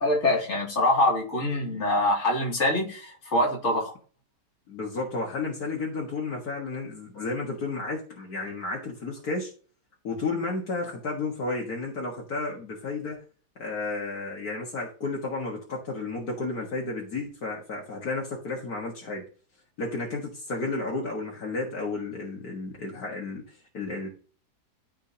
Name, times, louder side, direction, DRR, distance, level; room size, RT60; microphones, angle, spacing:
voice 1, 0.0-3.9, left 1 dB, 45° left, 2.4 m, -24 dB
voice 2, 4.7-9.5 10.0-13.2 13.6-19.2 19.8-24.1, left 3 dB, 65° left, 2.0 m, -32 dB
13.5 x 4.5 x 2.7 m
omnidirectional pair, 1.8 m